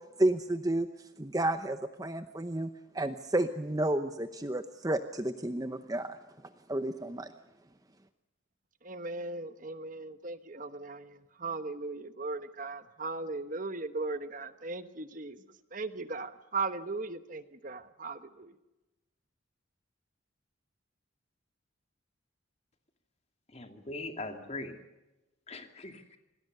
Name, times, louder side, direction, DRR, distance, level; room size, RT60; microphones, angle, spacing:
voice 1, 0.2-0.9 1.2-6.2 6.7-7.3, right 1 dB, 20° right, 9 dB, 0.8 m, -31 dB
voice 2, 8.8-18.6, right 3 dB, 40° right, 11 dB, 1.1 m, -38 dB
voice 3, 23.5-24.8 25.5-26.2, left 2 dB, 30° left, 6 dB, 2.5 m, -41 dB
27.0 x 20.0 x 6.7 m, 1.0 s
head